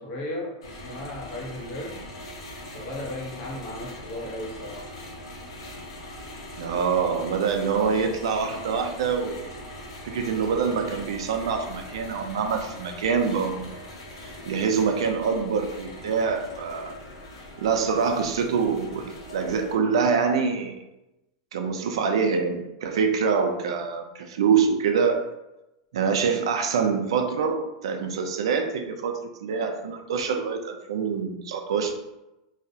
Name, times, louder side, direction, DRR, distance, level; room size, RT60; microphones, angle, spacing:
voice 1, 0.0-2.0 2.7-4.9, left 1 dB, 40° left, -3 dB, 0.8 m, -35 dB
sound 1, 0.6-19.7, left 1 dB, 90° left, 0.5 m, -41 dB
voice 2, 6.6-9.4 10.0-13.7 14.5-16.9 17.6-20.8 21.5-25.2 25.9-31.9, right 5 dB, 85° right, 5 dB, 0.4 m, -25 dB
2.3 x 2.0 x 2.6 m, 0.95 s
supercardioid pair, 140°, 3 cm